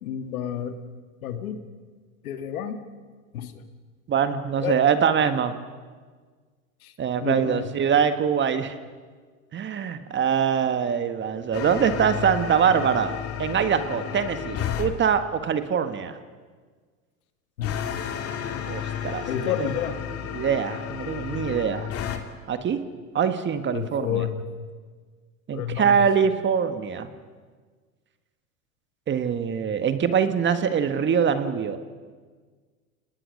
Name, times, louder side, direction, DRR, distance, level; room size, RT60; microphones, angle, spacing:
voice 1, 0.0-0.8 1.2-1.6 2.2-2.8 3.3-3.6 4.6-4.8 6.8-6.9 7.2-7.6 17.6-17.8 19.3-20.0 23.7-24.4 25.5-26.0, left 9 dB, 75° left, 8 dB, 2.2 m, -30 dB
voice 2, 4.1-5.6 7.0-8.8 9.5-16.2 18.7-19.5 20.3-21.9 22.5-22.8 23.1-24.3 25.5-27.1 29.1-31.8, right 7 dB, 25° right, 10 dB, 1.6 m, -23 dB
sound 1, 11.5-14.9 17.6-22.2, left 9 dB, 35° left, 2.5 m, -32 dB
29.0 x 19.5 x 6.6 m, 1.5 s
hypercardioid pair, 110°, 43 cm